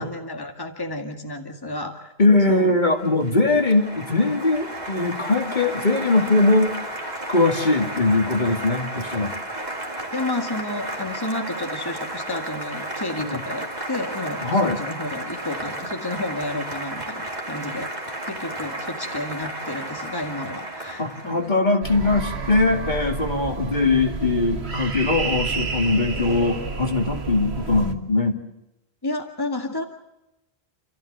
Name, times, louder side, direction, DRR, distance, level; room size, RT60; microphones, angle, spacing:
voice 1, 0.0-2.1 2.5-2.8 10.1-17.9 18.3-21.5 29.0-29.8, left 2 dB, 20° left, 4 dB, 1.9 m, -31 dB
voice 2, 2.2-6.8 7.3-9.3 13.2-13.4 14.4-14.8 21.0-28.4, left 2 dB, 45° left, 3 dB, 2.3 m, -21 dB
Applause, 2.7-21.6, right 1 dB, 45° right, 2.8 m, -33 dB
sound 1, 21.8-27.9, right 4 dB, 85° right, 1.9 m, -30 dB
29.0 x 14.5 x 8.0 m, 0.91 s
omnidirectional pair, 1.1 m